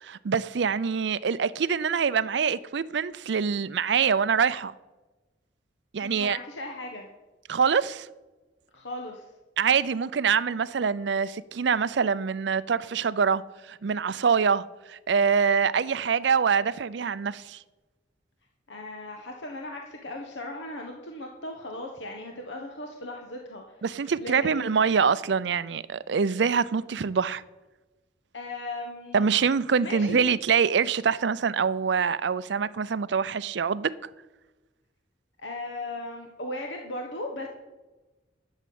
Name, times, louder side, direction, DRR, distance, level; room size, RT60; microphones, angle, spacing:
voice 1, 0.0-4.7 5.9-6.4 7.5-8.1 9.6-13.4 13.7-17.6 23.8-27.4 29.1-33.9, right 6 dB, 65° right, 0.5 m, -25 dB
voice 2, 6.0-7.1 8.7-9.3 18.7-23.8 24.2-24.8 28.3-29.4 29.8-30.3 35.4-37.5, left 1 dB, 75° left, 1.3 m, -37 dB
11.5 x 7.4 x 8.5 m
head